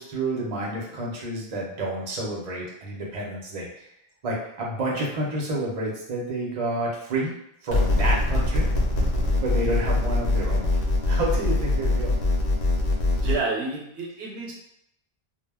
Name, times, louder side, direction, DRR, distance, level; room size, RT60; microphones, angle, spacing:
voice 1, 0.0-3.9 4.2-7.3 7.6-8.7 9.4-10.7 11.0-12.1, right 1 dB, 40° right, -3 dB, 0.6 m, -29 dB
sound 1, 7.7-13.3, left 2 dB, 80° left, 0.9 m, -23 dB
voice 2, 13.1-14.5, right 3 dB, 75° right, -2 dB, 0.9 m, -29 dB
2.1 x 2.0 x 3.4 m, 0.78 s
omnidirectional pair, 1.1 m